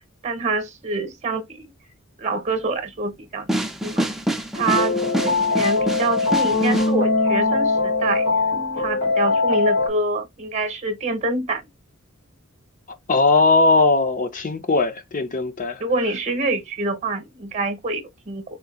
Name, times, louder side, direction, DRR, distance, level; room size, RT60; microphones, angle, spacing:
voice 1, 0.2-1.7 2.2-4.1 4.5-8.3 8.8-11.7 15.8-18.4, right 2 dB, 35° right, 0.9 m, -26 dB
sound 1, 3.5-6.9, equal, ahead, 0.5 m, -26 dB
sound 2, 4.5-9.9, left 3 dB, 85° left, 1.9 m, -21 dB
voice 2, 13.1-15.8, left 3 dB, 40° left, 0.7 m, -19 dB
3.7 x 2.7 x 2.8 m
head